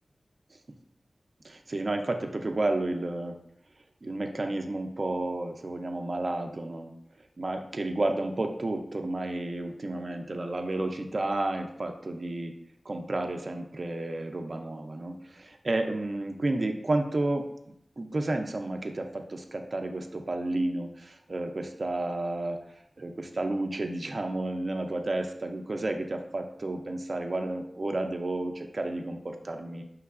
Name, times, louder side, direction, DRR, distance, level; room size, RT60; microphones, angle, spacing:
voice 1, 1.4-3.4 4.0-12.5 12.8-29.8, right 2 dB, 50° right, 4 dB, 0.4 m, -31 dB
5.6 x 3.0 x 2.4 m, 0.74 s
wide cardioid pair, 65°, 0 cm